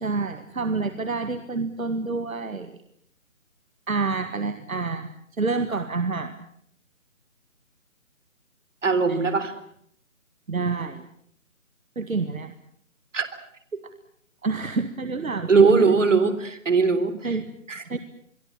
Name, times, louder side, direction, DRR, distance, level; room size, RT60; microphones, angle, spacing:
voice 1, 0.0-2.7 3.9-5.1 5.4-6.4 9.1-9.2 10.5-11.1 12.0-12.5 14.4-15.9 17.2-17.5 17.9-18.0, right 4 dB, 80° right, 9 dB, 2.1 m, -28 dB
voice 2, 8.8-9.5 13.1-13.3 15.5-17.1 17.7-18.0, right 4 dB, 65° right, 12 dB, 3.8 m, -20 dB
26.5 x 23.0 x 7.5 m, 0.68 s
figure-of-eight pair, 165°, 41 cm